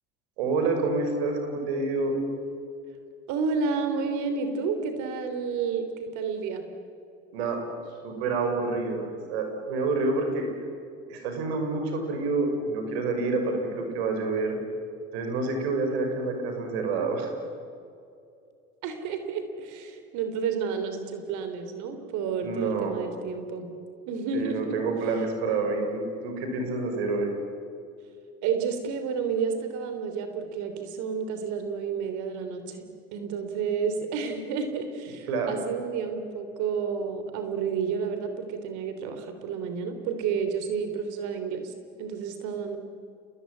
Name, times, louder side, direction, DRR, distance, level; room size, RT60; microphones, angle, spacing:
voice 1, 0.4-2.2 7.3-7.6 8.0-10.4 11.1-14.6 15.1-17.3 22.4-22.9 24.3-27.3 35.3-35.5, right 3 dB, 85° right, 4 dB, 6.1 m, -28 dB
voice 2, 3.3-6.6 18.8-23.7 24.1-24.8 28.4-41.7 42.0-42.8, right 6 dB, 70° right, 8 dB, 3.3 m, -30 dB
28.5 x 20.5 x 9.8 m, 2.4 s
hypercardioid pair, 80°, 31 cm